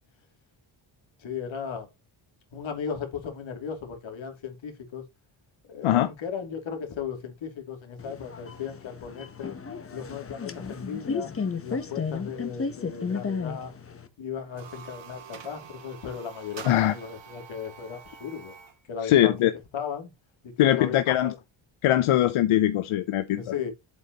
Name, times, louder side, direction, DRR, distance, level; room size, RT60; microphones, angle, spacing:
voice 1, 1.2-1.9 2.5-5.0 5.7-9.5 9.9-11.3 11.6-13.7 14.2-18.5 18.9-19.4 19.7-20.1 20.4-21.3 23.3-23.7, left 7 dB, 70° left, 2.8 m, -36 dB
sound 1, 8.0-14.1, left 5 dB, 30° left, 1.0 m, -33 dB
sound 2, 14.4-18.8, right 7 dB, 65° right, 2.3 m, -46 dB
voice 2, 16.6-16.9 19.0-19.5 20.6-21.3 21.8-23.4, left 13 dB, 90° left, 0.8 m, -21 dB
8.2 x 8.1 x 3.0 m
cardioid pair, 125°, 49 cm